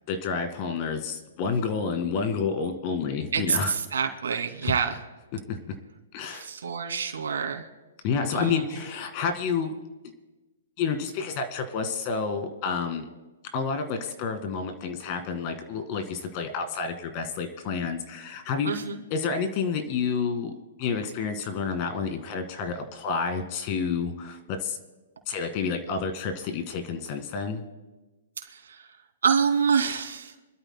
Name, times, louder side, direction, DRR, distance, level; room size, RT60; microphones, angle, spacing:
voice 1, 0.1-3.7 4.6-4.7 5.5-5.6 6.1-6.5 8.0-9.7 10.8-13.1 13.5-18.7 19.1-20.5 20.8-24.8 25.3-27.6, left 5 dB, 40° left, 7 dB, 2.0 m, -29 dB
voice 2, 3.3-4.9 6.3-7.6 8.3-8.6 18.6-19.0 29.2-30.3, right 6 dB, 85° right, 4 dB, 2.5 m, -26 dB
26.0 x 12.5 x 2.2 m, 1.2 s
hypercardioid pair, 145°, 0 cm